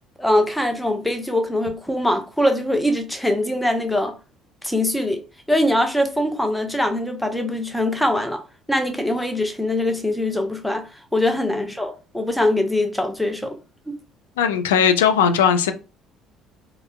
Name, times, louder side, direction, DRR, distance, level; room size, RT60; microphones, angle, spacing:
voice 1, 0.2-4.1 4.6-8.4 8.7-10.8 11.1-13.6 13.9-14.0, left 1 dB, 5° left, 0.7 m, -22 dB
voice 2, 14.4-15.7, left 7 dB, 80° left, 0.3 m, -18 dB
3.8 x 2.1 x 2.2 m
figure-of-eight pair, 55°, 0 cm